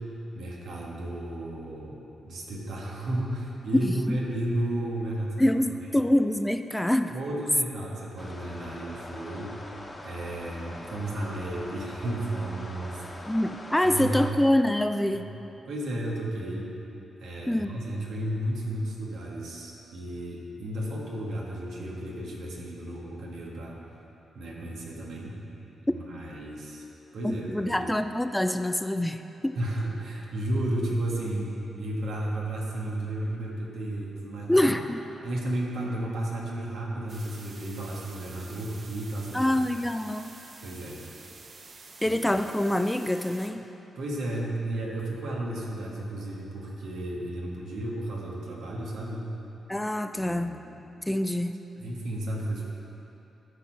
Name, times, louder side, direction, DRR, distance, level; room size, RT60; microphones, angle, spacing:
voice 1, 0.0-2.0 2.2-5.5 7.1-9.5 10.0-13.3 13.8-14.2 15.1-15.4 15.6-16.7 17.2-23.8 24.3-25.4 25.8-26.8 27.1-27.9 29.6-34.7 35.2-39.5 40.6-41.0 42.0-42.2 43.9-49.3 50.1-50.8 51.8-52.7, right 1 dB, 80° right, -3 dB, 1.5 m, -33 dB
voice 2, 3.8-4.2 5.4-7.1 13.3-15.2 17.5-17.8 27.2-29.6 34.5-35.0 39.3-40.3 42.0-43.6 49.7-50.6 51.1-51.6, left 1 dB, 10° left, 9 dB, 0.3 m, -25 dB
sound 1, 8.2-14.3, left 1 dB, 25° left, 1.1 m, -43 dB
sound 2, 37.1-43.5, right 3 dB, 55° right, 0.8 m, -49 dB
13.0 x 4.7 x 4.5 m, 3.0 s
cardioid pair, 65°, 0 cm